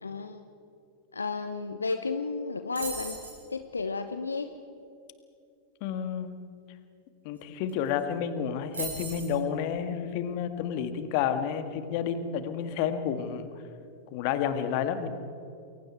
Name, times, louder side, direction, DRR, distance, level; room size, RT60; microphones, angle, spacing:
voice 1, 0.0-0.4 1.1-3.2 3.5-4.5, left 4 dB, 75° left, 9 dB, 0.9 m, -32 dB
sound 1, 2.8-3.4 7.4-7.5 7.7-8.0 8.7-9.4, right 4 dB, 70° right, 6.5 m, -37 dB
voice 2, 5.8-6.4 7.2-13.5 14.1-15.1, left 8 dB, 45° left, 9 dB, 1.9 m, -30 dB
29.0 x 22.5 x 4.6 m, 2.6 s
figure-of-eight pair, 90°, 0 cm